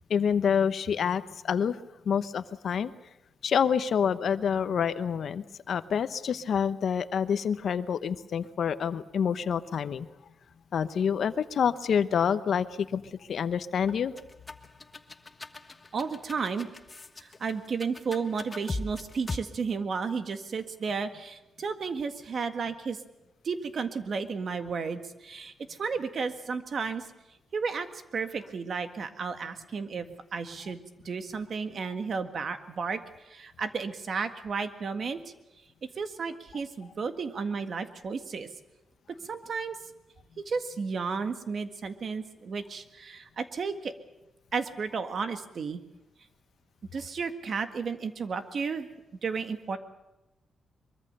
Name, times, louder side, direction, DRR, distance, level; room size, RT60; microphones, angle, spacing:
voice 1, 0.1-1.8 2.0-2.9 3.4-10.1 10.7-14.1, left 7 dB, 65° left, 12 dB, 1.0 m, -27 dB
sound 1, 13.9-19.4, left 2 dB, 20° left, 1.4 m, -39 dB
voice 2, 15.9-16.7 17.2-23.0 23.4-27.1 27.5-30.1 30.3-30.8 31.0-35.2 36.0-38.5 39.2-39.8 40.4-43.9 44.5-45.8 46.9-48.9 49.2-49.8, right 5 dB, 50° right, 8 dB, 1.8 m, -33 dB
23.5 x 23.0 x 6.8 m, 0.97 s
wide cardioid pair, 130°, 0 cm